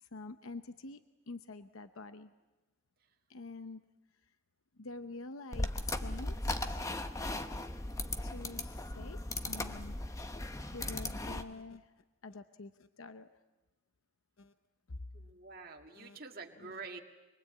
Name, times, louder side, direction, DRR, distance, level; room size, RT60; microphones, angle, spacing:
voice 1, 0.0-2.3 3.3-3.8 4.8-6.8 8.2-9.2 9.4-10.0 10.7-13.3 14.4-14.5 15.9-16.2 16.6-16.8, left 3 dB, 75° left, 9 dB, 0.8 m, -47 dB
sound 1, 5.5-11.4, left 2 dB, 15° left, 0.9 m, -37 dB
voice 2, 15.1-17.0, right 4 dB, 45° right, 2 dB, 1.9 m, -47 dB
25.5 x 23.0 x 8.6 m, 1.1 s
head